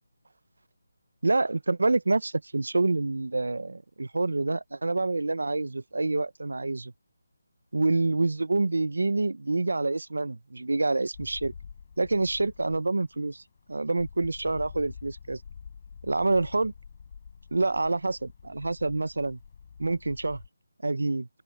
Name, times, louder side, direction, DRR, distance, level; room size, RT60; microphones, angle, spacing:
voice 1, 1.2-6.9 7.7-11.5 12.0-13.4 13.7-15.4 16.0-16.7 17.5-19.4 19.8-20.4 20.8-21.3, right 2 dB, 80° right, 0.9 m, -27 dB
sound 1, 11.1-20.5, left 6 dB, 40° left, 4.4 m, -47 dB
open air
figure-of-eight pair, 165°, 0 cm